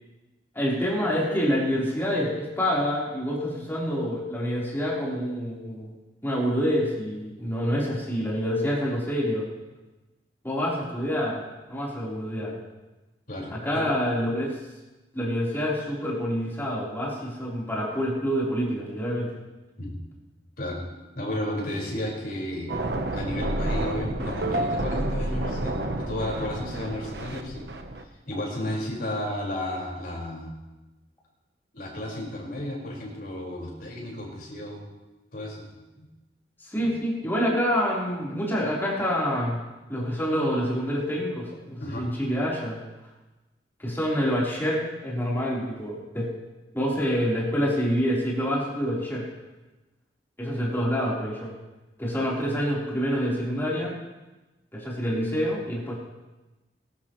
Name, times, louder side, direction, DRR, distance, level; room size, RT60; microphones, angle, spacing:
voice 1, 0.5-5.9 6.2-9.5 10.4-11.4 11.7-12.6 13.5-14.6 15.1-19.3 36.6-39.6 39.9-42.8 43.8-46.3 46.7-49.2 50.4-51.5 52.0-53.9 54.7-56.0, equal, 15° left, -6 dB, 4.1 m, -27 dB
voice 2, 13.3-13.9 19.8-20.0 20.6-20.8 21.2-22.7 23.1-27.7 28.3-30.5 31.7-34.8 35.3-35.6 36.0-36.1 36.8-36.9 41.8-42.0, left 1 dB, 60° left, -3 dB, 5.3 m, -33 dB
sound 1, 22.7-28.0, right 1 dB, 65° right, 1.1 m, -29 dB
22.0 x 12.0 x 3.2 m, 1.1 s
head